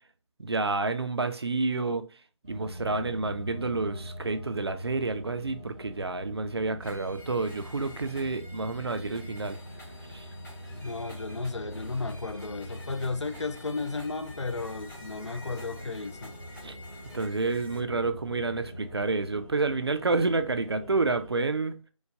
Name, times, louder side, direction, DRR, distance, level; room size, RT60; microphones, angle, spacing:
voice 1, 0.4-2.1 2.5-9.6 10.1-10.3 16.6-16.8 17.1-21.8, right 3 dB, 50° right, 0.4 m, -29 dB
sound 1, 2.4-21.3, equal, ahead, 0.5 m, -43 dB
sound 2, 6.8-17.8, left 1 dB, 35° left, 1.4 m, -50 dB
voice 2, 10.8-16.3, left 3 dB, 60° left, 0.4 m, -34 dB
4.5 x 2.2 x 2.6 m
figure-of-eight pair, 165°, 17 cm